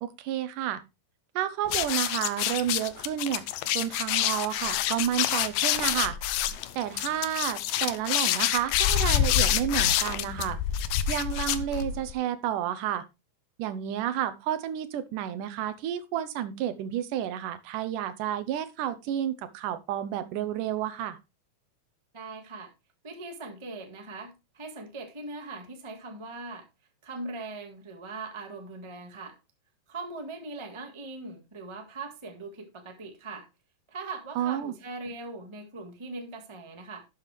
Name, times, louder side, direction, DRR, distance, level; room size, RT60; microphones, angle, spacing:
voice 1, 0.0-0.8 1.4-3.4 3.7-6.4 6.8-10.6 11.1-13.0 13.6-21.2 34.4-34.8, right 11 dB, 80° right, 2.4 m, -31 dB
sound 1, 1.7-12.1, left 11 dB, 85° left, 2.3 m, -27 dB
voice 2, 22.1-22.7 23.0-26.7 27.0-29.4 29.9-33.5 33.9-37.0, right 3 dB, 25° right, 0.6 m, -40 dB
11.5 x 7.5 x 3.3 m
omnidirectional pair, 3.8 m